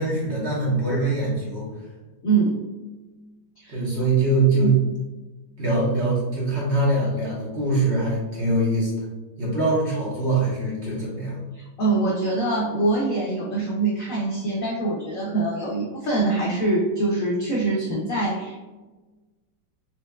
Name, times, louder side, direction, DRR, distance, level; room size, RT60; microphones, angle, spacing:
voice 1, 0.0-1.7 3.7-4.7 5.6-8.9 9.4-11.4, right 2 dB, 40° right, -7 dB, 1.2 m, -23 dB
voice 2, 2.2-2.6 3.6-3.8 4.6-4.7 11.6-18.6, right 3 dB, 90° left, -3 dB, 0.7 m, -24 dB
4.4 x 3.0 x 2.2 m, 1.2 s
omnidirectional pair, 2.2 m